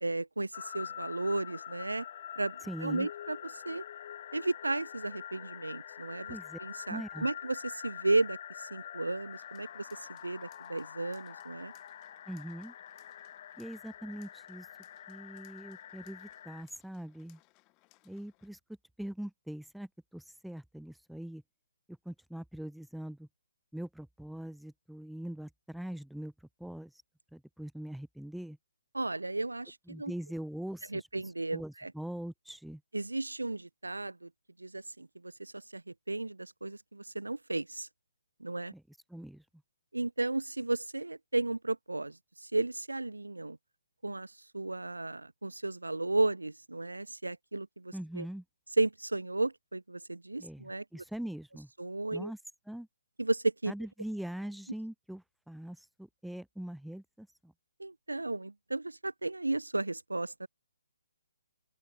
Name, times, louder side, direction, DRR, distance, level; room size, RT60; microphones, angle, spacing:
voice 1, 0.0-2.0 2.4-3.8 4.3-8.4 8.7-11.7 28.9-30.1 30.9-31.9 32.9-34.3 34.6-37.9 38.4-38.7 39.9-43.6 44.0-48.2 48.8-50.8 51.8-52.3 53.2-53.7 57.8-60.5, right 2 dB, 75° right, 0.4 m, -34 dB
sound 1, 0.5-16.6, left 10 dB, 40° left, 0.4 m, -46 dB
voice 2, 2.6-3.1 6.3-6.6 6.9-7.3 12.3-12.7 13.6-14.7 15.1-17.4 18.0-18.6 19.0-21.4 21.9-23.3 23.7-26.3 26.6-26.9 27.3-28.6 29.9-31.1 31.5-32.8 38.7-39.4 47.9-48.4 50.4-51.7 52.1-52.4 52.7-52.9 53.7-57.5, right 1 dB, ahead, 0.7 m, -42 dB
sound 2, 9.3-18.5, left 27 dB, 20° left, 5.0 m, -68 dB
open air
figure-of-eight pair, 135°, 0 cm